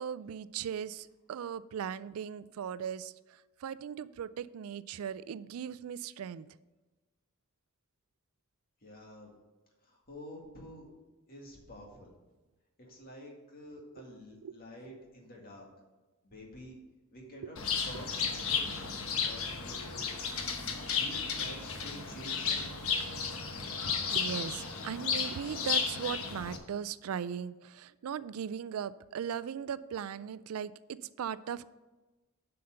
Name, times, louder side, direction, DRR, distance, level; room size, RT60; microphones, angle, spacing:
voice 1, 0.0-6.5 13.9-14.1 14.4-14.6 23.8-30.7 31.2-31.6, right 8 dB, 80° right, 17 dB, 0.4 m, -38 dB
voice 2, 8.8-9.3 9.8-10.9 11.3-12.1 12.8-15.7 16.2-16.8 17.1-18.8 19.2-20.0 20.9-22.9, equal, 45° left, 0 dB, 2.0 m, -49 dB
Bird, 17.6-26.6, left 6 dB, 75° left, 1.0 m, -33 dB
7.5 x 5.8 x 6.4 m, 1.2 s
head